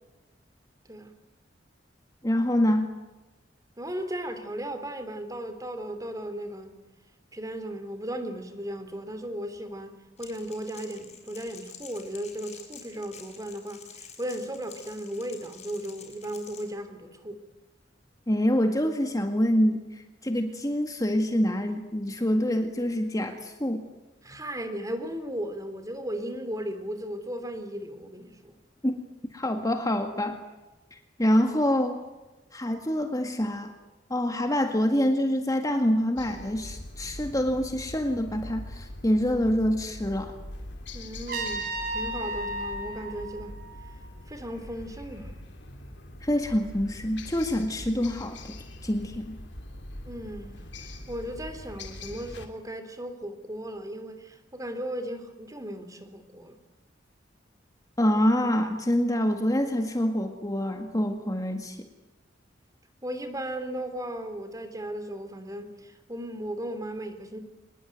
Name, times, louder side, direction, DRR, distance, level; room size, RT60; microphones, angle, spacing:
voice 1, 2.2-2.9 18.3-23.8 28.8-29.0 29.3-30.4 30.9-32.0 32.5-33.7 34.1-40.3 46.2-49.3 58.0-61.9, equal, 20° left, 5 dB, 1.9 m, -26 dB
voice 2, 3.8-6.7 7.3-17.4 24.2-28.6 40.9-43.6 44.3-45.3 50.0-56.5 63.0-67.4, right 1 dB, 20° right, 9 dB, 3.2 m, -36 dB
Crackle, 10.2-16.7, left 6 dB, 35° left, 7.2 m, -48 dB
sound 1, 36.2-52.5, left 1 dB, 70° left, 2.9 m, -42 dB
Trumpet, 41.3-44.2, right 2 dB, 55° right, 6.9 m, -34 dB
26.0 x 20.5 x 9.3 m, 1.1 s
head